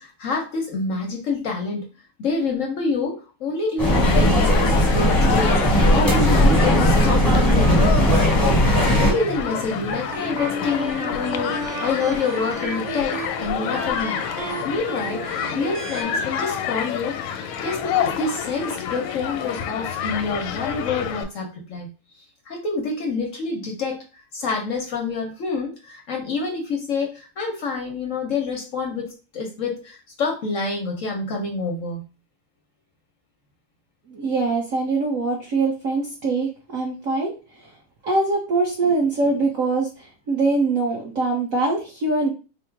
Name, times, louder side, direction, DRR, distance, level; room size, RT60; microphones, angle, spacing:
voice 1, 0.0-1.8 2.2-8.0 8.4-14.2 14.6-15.2 15.5-21.9 22.5-24.0 24.3-32.0, left 4 dB, 65° left, 1 dB, 0.7 m, -27 dB
sound 1, 3.8-9.1, equal, 20° left, 0.6 m, -17 dB
Human group actions, 3.9-21.2, left 8 dB, 85° left, 1.5 m, -29 dB
sound 2, 6.6-16.0, right 4 dB, 85° right, 1.7 m, -34 dB
voice 2, 34.1-37.3 37.6-37.7 38.0-42.3, right 3 dB, 60° right, -1 dB, 0.8 m, -23 dB
4.3 x 2.0 x 4.5 m, 0.32 s
omnidirectional pair, 2.4 m